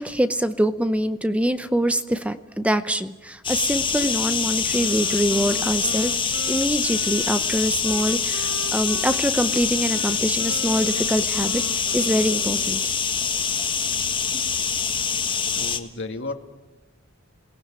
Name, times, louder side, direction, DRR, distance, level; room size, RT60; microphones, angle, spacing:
voice 1, 0.0-12.9, equal, 5° right, 11 dB, 0.7 m, -24 dB
sound 1, 3.4-15.8, left 6 dB, 25° left, 1.7 m, -25 dB
Wind instrument woodwind instrument, 4.7-12.9, right 4 dB, 80° right, 1.3 m, -39 dB
voice 2, 15.2-16.3, left 2 dB, 60° left, 6 dB, 2.5 m, -34 dB
28.0 x 18.5 x 9.0 m, 1.2 s
head